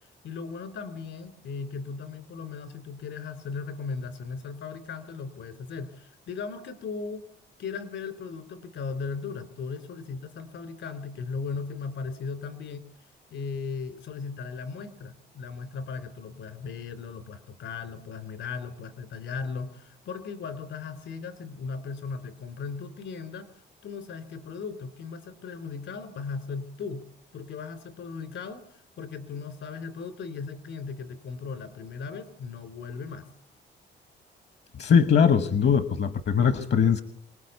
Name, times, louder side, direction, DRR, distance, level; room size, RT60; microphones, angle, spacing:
voice 1, 0.0-7.3 7.6-12.8 13.3-23.5 23.8-33.3, left 5 dB, 75° left, 12 dB, 3.4 m, -37 dB
voice 2, 34.8-37.0, left 7 dB, 60° left, 12 dB, 1.2 m, -21 dB
24.5 x 19.5 x 8.2 m, 0.64 s
cardioid pair, 90°, 20 cm